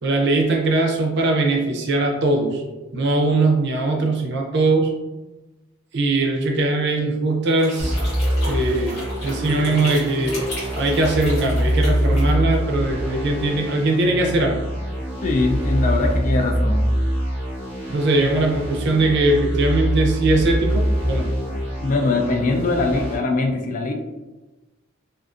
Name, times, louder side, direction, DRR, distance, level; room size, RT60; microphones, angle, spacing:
voice 1, 0.0-2.6 2.9-4.9 5.9-8.0 8.4-14.6 17.9-21.3, right 2 dB, 60° right, 1 dB, 0.5 m, -20 dB
sound 1, 7.6-12.5, left 1 dB, 75° left, 1.4 m, -34 dB
sound 2, 7.8-23.2, equal, 5° right, 0.8 m, -24 dB
voice 2, 15.2-16.9 21.8-23.9, left 3 dB, 40° left, 3 dB, 0.3 m, -22 dB
2.4 x 2.4 x 2.4 m, 1.1 s
head